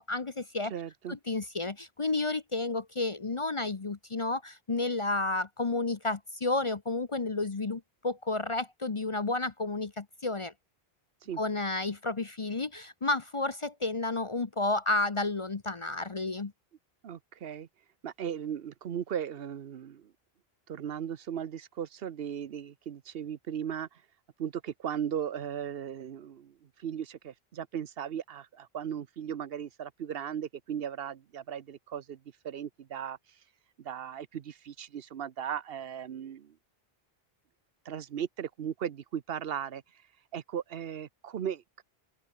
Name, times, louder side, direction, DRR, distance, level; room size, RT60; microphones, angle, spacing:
voice 1, 0.0-0.7 1.1-10.5 11.4-16.5, left 2 dB, 35° left, 0.8 m, -31 dB
voice 2, 0.7-1.2 11.3-11.4 17.0-17.7 18.0-20.1 20.7-23.9 24.4-26.5 26.8-32.2 32.4-33.2 33.8-36.5 37.9-39.8 40.3-41.6, right 9 dB, 70° right, 1.0 m, -37 dB
open air
omnidirectional pair, 1.0 m